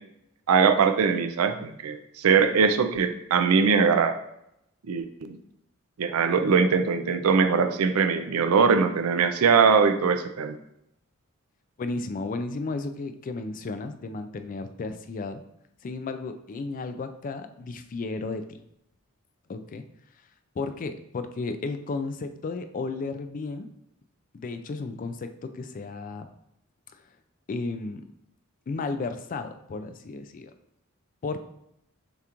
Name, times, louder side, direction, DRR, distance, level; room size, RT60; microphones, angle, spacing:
voice 1, 0.5-4.2 4.9-5.4 6.0-10.6, right 5 dB, 85° right, 9 dB, 0.4 m, -21 dB
voice 2, 11.8-15.4 15.8-18.6 19.5-19.8 20.6-23.7 24.3-26.3 27.5-28.0 28.7-30.5 31.2-31.5, left 3 dB, 40° left, 9 dB, 0.3 m, -33 dB
6.7 x 2.5 x 2.9 m, 0.79 s
head